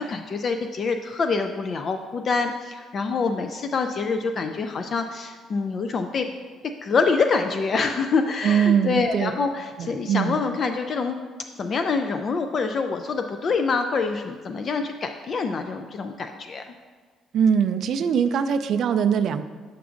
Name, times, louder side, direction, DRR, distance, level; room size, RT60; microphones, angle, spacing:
voice 1, 0.0-6.3 6.8-11.2 11.6-16.7, left 4 dB, 35° left, 6 dB, 0.3 m, -26 dB
voice 2, 8.4-9.3 9.8-10.4 17.3-19.4, right 7 dB, 55° right, 9 dB, 0.3 m, -22 dB
8.0 x 5.9 x 2.5 m, 1.5 s
cardioid pair, 150°, 0 cm